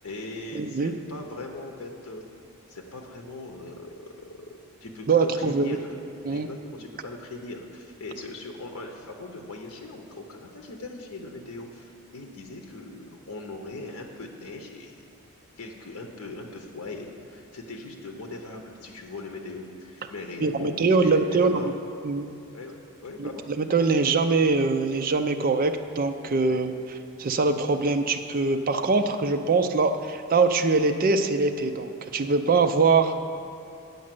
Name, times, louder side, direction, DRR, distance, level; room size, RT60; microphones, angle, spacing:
voice 1, 0.0-2.2 2.7-6.0 6.3-14.9 15.6-21.7 22.5-23.4 26.5-26.6, left 2 dB, 75° left, 2 dB, 0.8 m, -40 dB
voice 2, 0.5-0.9 5.1-5.8 6.2-6.5 20.4-21.7 22.0-22.3 23.2-26.7 27.2-33.3, right 4 dB, 40° right, 7 dB, 0.4 m, -23 dB
8.5 x 5.3 x 7.6 m, 2.6 s
head